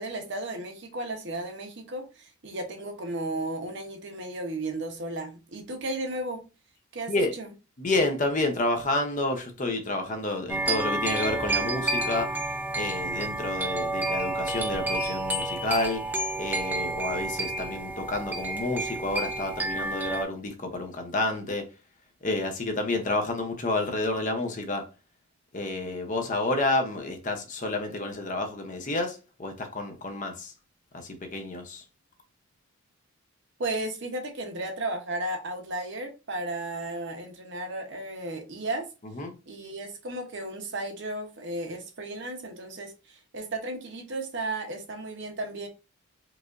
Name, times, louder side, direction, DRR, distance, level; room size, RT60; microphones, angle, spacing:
voice 1, 0.0-6.4 6.9-7.5 33.6-38.9 39.5-45.7, right 2 dB, 50° right, 0.8 m, -34 dB
voice 2, 7.8-12.4 12.8-16.0 16.4-21.7 22.2-24.9 25.5-30.5 30.9-31.8 39.2-39.4, left 2 dB, 35° left, 0.6 m, -29 dB
sound 1, 10.5-20.2, right 2 dB, 10° right, 0.3 m, -30 dB
4.7 x 2.5 x 2.4 m
head